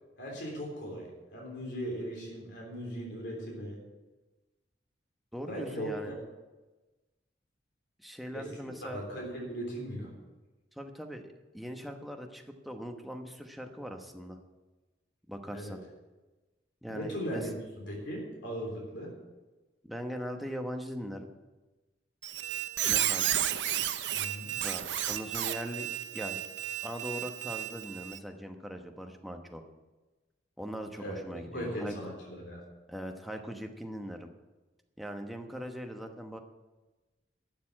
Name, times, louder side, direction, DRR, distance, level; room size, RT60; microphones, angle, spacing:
voice 1, 0.2-3.8 5.5-6.1 8.3-8.5 8.8-10.1 15.5-15.8 16.9-17.5 17.9-19.1 24.1-24.5 31.0-31.2 31.5-32.6, equal, 70° left, -2 dB, 3.6 m, -38 dB
voice 2, 5.3-6.1 8.0-9.0 10.8-11.3 11.5-14.4 15.3-15.8 16.8-17.4 19.8-21.3 22.8-23.3 24.6-25.9 26.1-26.4 26.8-29.6 30.6-31.9 32.9-34.3 35.0-36.4, equal, ahead, 3 dB, 1.0 m, -40 dB
Squeak, 22.2-28.2, right 11 dB, 70° right, 0.7 m, -32 dB
12.5 x 6.9 x 8.6 m, 1.2 s
head